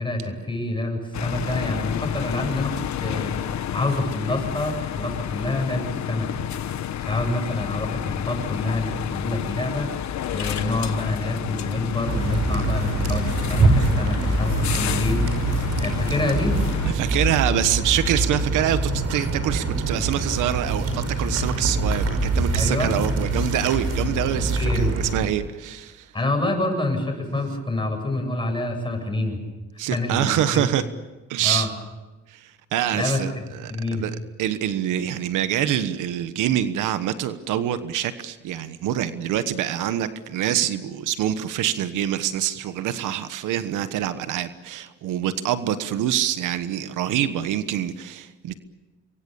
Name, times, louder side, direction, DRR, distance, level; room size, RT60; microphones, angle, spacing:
voice 1, 0.0-3.4 3.7-6.5 7.0-9.9 10.3-15.3 15.8-16.6 22.6-23.0 24.6-24.9 26.1-29.4 29.8-30.6 31.4-31.7 32.9-34.0, left 2 dB, 15° left, 3 dB, 8.0 m, -27 dB
sound 1, 1.1-16.9, left 10 dB, 65° left, 1.3 m, -30 dB
sound 2, 12.0-25.3, right 2 dB, 55° right, 5.7 m, -24 dB
voice 2, 16.9-26.1 29.8-30.8 31.3-31.7 32.3-33.3 33.6-34.1 34.4-48.6, right 11 dB, 90° right, 11 dB, 1.3 m, -25 dB
27.0 x 23.5 x 7.1 m, 1.1 s
cardioid pair, 90°, 30 cm